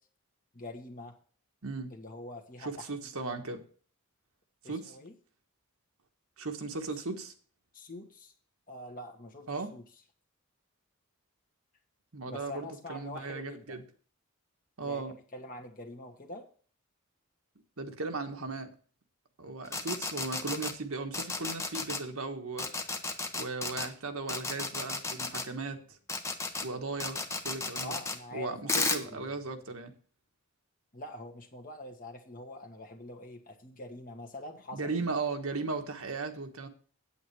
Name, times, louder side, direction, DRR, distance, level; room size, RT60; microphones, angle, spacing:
voice 1, 0.5-1.1 1.9-3.1 4.6-5.1 7.7-8.3 8.7-9.8 12.3-13.8 14.8-15.1 15.3-16.4 27.8-29.3 30.9-35.0, left 2 dB, 40° left, 3 dB, 1.5 m, -45 dB
voice 2, 1.6-1.9 2.6-3.6 4.6-5.0 6.4-7.3 9.5-9.7 12.1-13.8 14.8-15.1 17.8-18.7 19.4-22.7 23.3-26.0 26.6-28.0 28.3-29.9 34.7-36.7, right 3 dB, 70° right, 5 dB, 1.3 m, -37 dB
sound 1, 19.7-20.7 21.1-22.0 22.6-23.9 24.3-25.4 26.1-26.6 27.0-28.2 28.7-29.0, left 3 dB, 15° left, 0.8 m, -33 dB
8.7 x 8.6 x 4.6 m, 0.43 s
head